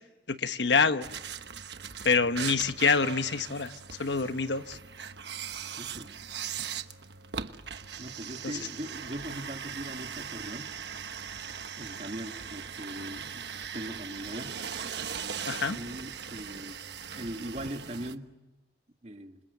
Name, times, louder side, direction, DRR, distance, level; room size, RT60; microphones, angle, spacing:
voice 1, 0.3-1.1 2.0-3.7 4.0-4.8 15.5-15.8, left 4 dB, 85° left, 10 dB, 1.1 m, -26 dB
sound 1, 1.0-18.1, right 7 dB, 75° right, 1.2 m, -40 dB
voice 2, 5.8-6.1 8.0-10.7 11.8-13.5 13.7-14.6 15.6-16.8 17.2-18.3 19.0-19.4, right 1 dB, 40° right, 6 dB, 1.6 m, -40 dB
27.5 x 26.5 x 8.0 m, 1.1 s
head